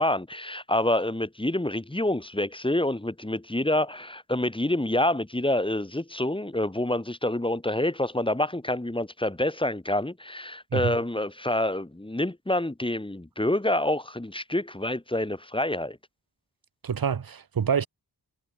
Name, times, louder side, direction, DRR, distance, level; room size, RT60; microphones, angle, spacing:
voice 1, 0.0-16.0, left 1 dB, 15° left, 1.7 m, -27 dB
voice 2, 16.8-17.9, right 7 dB, 60° right, 1.2 m, -26 dB
cardioid pair, 50°, 40 cm